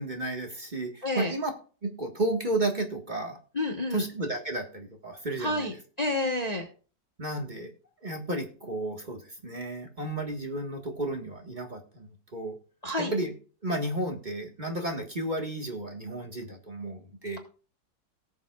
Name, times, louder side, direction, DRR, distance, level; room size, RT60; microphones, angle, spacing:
voice 1, 0.0-1.5 1.8-3.4 3.9-5.7 7.2-7.7 8.0-12.6 13.0-13.3 13.6-17.4, right 2 dB, 25° right, 3 dB, 1.6 m, -32 dB
voice 2, 3.5-4.0 5.4-5.7 6.0-6.6 12.8-13.1, left 2 dB, 25° left, 3 dB, 1.2 m, -29 dB
18.5 x 7.2 x 2.4 m, 0.38 s
omnidirectional pair, 1.9 m